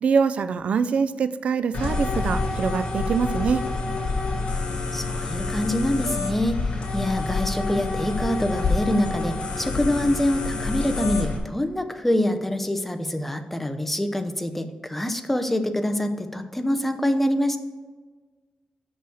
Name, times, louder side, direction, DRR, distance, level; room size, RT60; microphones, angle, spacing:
voice 1, 0.0-3.6, right 6 dB, 65° right, 13 dB, 0.4 m, -24 dB
sound 1, 1.7-11.4, left 3 dB, 60° left, 2.0 m, -27 dB
voice 2, 4.9-6.6 6.9-17.6, left 1 dB, 10° left, 8 dB, 0.8 m, -25 dB
6.2 x 5.6 x 6.4 m, 1.4 s
cardioid pair, 95°, 2 cm